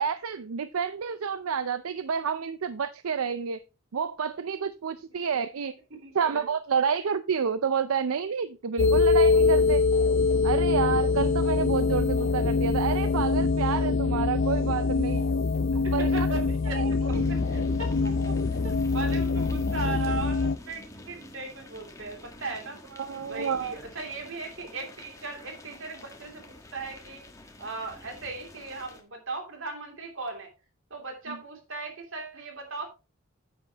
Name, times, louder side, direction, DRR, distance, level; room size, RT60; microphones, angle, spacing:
voice 1, 0.0-3.6 3.9-5.8 6.1-9.8 10.4-15.2 15.7-16.3 16.7-17.2 23.0-23.7 31.3-31.4, right 6 dB, 85° right, 13 dB, 0.5 m, -29 dB
voice 2, 6.0-6.4 15.7-22.8 23.2-26.4 26.7-27.2 27.6-30.5 30.9-32.9, right 3 dB, 65° right, 4 dB, 2.9 m, -38 dB
sound 1, 8.8-20.6, left 4 dB, 60° left, 0.5 m, -24 dB
sound 2, 17.1-29.0, left 1 dB, 15° left, 1.4 m, -44 dB
9.3 x 8.9 x 2.9 m, 0.28 s
head